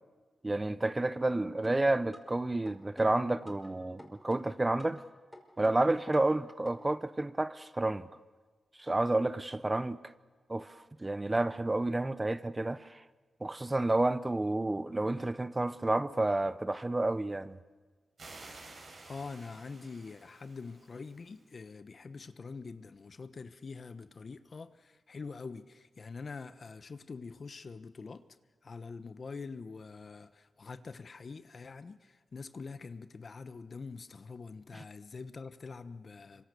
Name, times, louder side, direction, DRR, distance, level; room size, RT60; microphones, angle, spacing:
voice 1, 0.4-5.0 5.6-8.1 8.8-10.1 10.5-13.0 13.4-17.6, right 2 dB, 25° right, 0.9 m, -30 dB
sound 1, 1.6-2.4 2.7-3.7 4.0-5.0 5.3-6.4 6.7-6.8, equal, 5° left, 5.5 m, -51 dB
sound 2, 18.2-21.5, right 3 dB, 60° right, 6.8 m, -52 dB
voice 2, 19.0-28.2 28.6-36.4, left 4 dB, 55° left, 1.2 m, -45 dB
26.0 x 24.5 x 6.9 m
cardioid pair, 55°, 0 cm